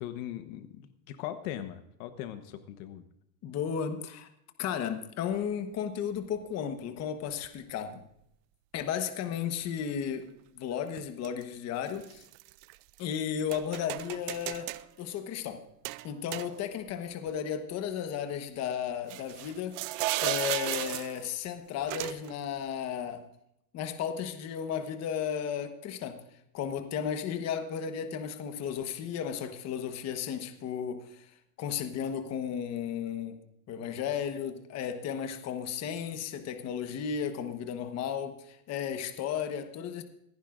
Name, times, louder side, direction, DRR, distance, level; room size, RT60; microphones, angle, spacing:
voice 1, 0.0-3.0, left 11 dB, 60° left, 1.2 m, -40 dB
voice 2, 3.4-4.3 4.6-8.0 8.7-12.2 13.0-15.6 16.0-23.3 23.7-26.2 26.5-31.3 31.6-33.4 33.7-40.0, left 8 dB, 35° left, 1.2 m, -34 dB
sound 1, 5.3-5.4 6.4-6.5 7.4-7.7 11.0-11.4 11.9-13.0 13.5-14.9 15.8-16.9 17.3-17.4 19.1-21.3 21.9-22.3, right 19 dB, 40° right, 0.4 m, -35 dB
26.5 x 10.0 x 2.5 m
supercardioid pair, 135°, 47 cm